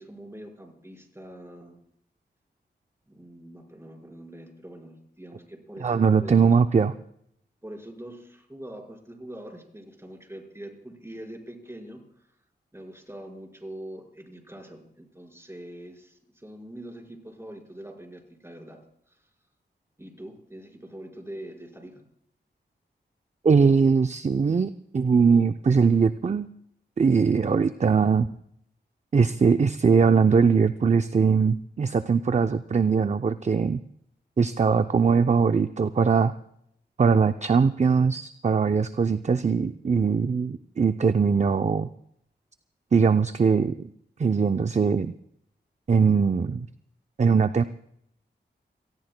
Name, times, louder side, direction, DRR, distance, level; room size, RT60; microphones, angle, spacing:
voice 1, 0.0-1.8 3.1-6.6 7.6-12.3 12.7-18.8 19.0-19.3 20.0-22.0, right 1 dB, 15° right, 1 dB, 4.9 m, -43 dB
voice 2, 5.8-6.9 23.4-26.5 27.0-28.3 29.1-33.8 34.4-36.3 37.0-41.9 42.9-43.9 44.2-45.1 45.9-46.7 47.2-47.6, right 5 dB, 40° right, 10 dB, 0.5 m, -21 dB
27.5 x 18.5 x 2.2 m, 0.72 s
cardioid pair, 55°, 19 cm